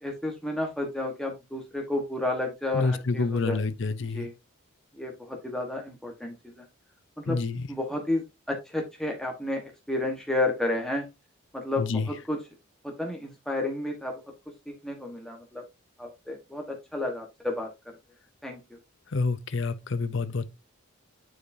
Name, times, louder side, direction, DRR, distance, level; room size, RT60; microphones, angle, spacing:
voice 1, 0.0-3.6 4.1-4.3 5.0-6.6 7.2-7.4 7.7-9.6 9.9-11.0 11.5-12.4 12.8-14.2 14.7-15.6 16.0-17.7 18.4-18.6, left 2 dB, ahead, 1.2 m, -31 dB
voice 2, 2.7-4.3 7.3-7.7 11.8-12.1 19.1-20.5, left 3 dB, 55° left, 0.6 m, -28 dB
9.4 x 4.8 x 2.7 m
head